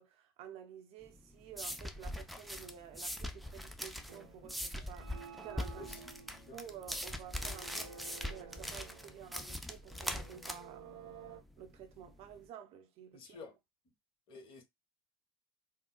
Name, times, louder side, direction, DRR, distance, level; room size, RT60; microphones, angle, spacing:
voice 1, 0.0-5.9 6.5-13.4, right 9 dB, 50° right, 0.6 m, -51 dB
sound 1, 1.0-12.4, equal, ahead, 0.5 m, -42 dB
sound 2, 4.1-11.4, right 6 dB, 80° right, 0.8 m, -53 dB
voice 2, 5.8-6.2 6.5-6.6 13.1-13.6 14.3-14.6, left 4 dB, 45° left, 1.2 m, -51 dB
3.7 x 2.0 x 2.2 m
hypercardioid pair, 75°, 13 cm